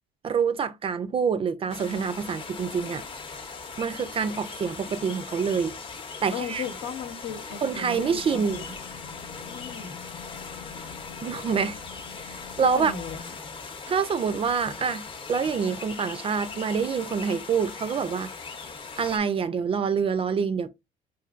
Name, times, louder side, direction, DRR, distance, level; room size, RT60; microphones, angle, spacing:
voice 1, 0.2-3.0 3.8-5.8 6.2-6.6 7.6-8.6 11.2-11.8 12.1-12.9 13.9-15.0 15.3-18.3 19.0-20.7, right 6 dB, 35° right, 0.4 m, -26 dB
sound 1, 1.7-19.2, left 4 dB, 30° left, 0.7 m, -40 dB
voice 2, 6.3-8.7 9.4-10.0 12.7-13.3, left 6 dB, 65° left, 0.9 m, -36 dB
Boat Water vehicle / Engine, 7.9-13.2, left 8 dB, 90° left, 0.4 m, -46 dB
4.5 x 2.6 x 2.4 m
cardioid pair, 110°, 17 cm